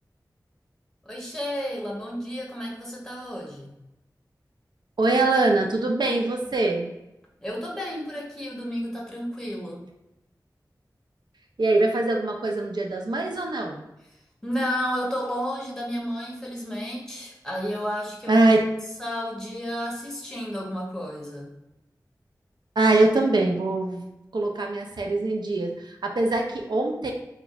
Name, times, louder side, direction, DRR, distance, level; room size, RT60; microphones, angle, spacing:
voice 1, 1.0-3.8 7.4-9.8 14.4-18.5 19.0-21.5, equal, 5° left, -2 dB, 0.9 m, -32 dB
voice 2, 5.0-6.9 11.6-13.8 18.3-18.6 22.8-24.1 24.3-27.1, right 2 dB, 80° right, 2 dB, 0.5 m, -23 dB
4.6 x 2.3 x 2.3 m, 0.91 s
wide cardioid pair, 65°, 7 cm